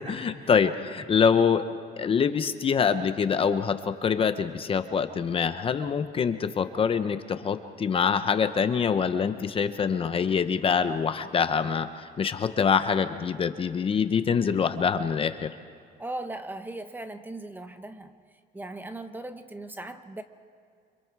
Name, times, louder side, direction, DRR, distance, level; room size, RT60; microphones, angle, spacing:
voice 1, 0.0-1.6 2.0-15.5, left 6 dB, 30° left, 10 dB, 0.8 m, -25 dB
voice 2, 16.0-18.1 18.5-20.2, right 2 dB, 10° right, 9 dB, 0.9 m, -38 dB
29.0 x 25.5 x 4.7 m, 2.3 s
cardioid pair, 160°, 17 cm